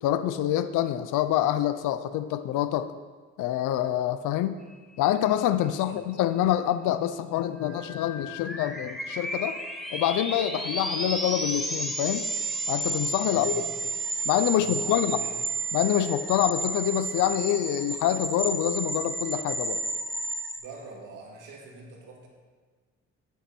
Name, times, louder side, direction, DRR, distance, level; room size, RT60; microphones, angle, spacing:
voice 1, 0.0-2.9 3.4-4.6 5.0-9.6 9.9-12.3 12.7-13.5 14.3-15.2 15.7-19.8, left 12 dB, 90° left, 11 dB, 0.6 m, -26 dB
voice 2, 5.6-6.0 13.3-13.9 14.5-15.4 20.6-22.3, right 3 dB, 85° right, -2 dB, 2.4 m, -44 dB
sound 1, 7.6-20.6, right 2 dB, ahead, 1.6 m, -32 dB
11.0 x 9.2 x 4.4 m, 1.5 s
cardioid pair, 90°, 30 cm